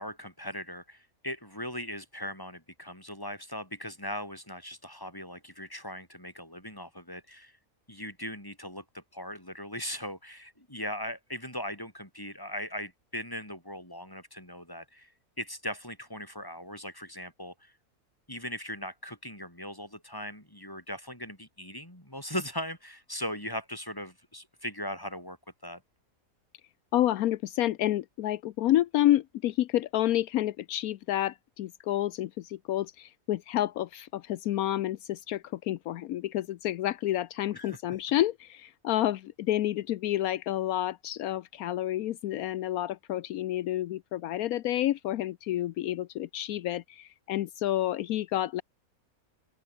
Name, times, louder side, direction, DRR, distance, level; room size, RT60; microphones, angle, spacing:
voice 1, 0.0-7.5 7.9-15.1 15.4-17.7 18.3-25.4 25.6-25.8 37.5-37.8, equal, 15° left, 7.3 m, -39 dB
voice 2, 26.9-48.6, left 13 dB, 80° left, 1.1 m, -29 dB
open air
omnidirectional pair, 1.5 m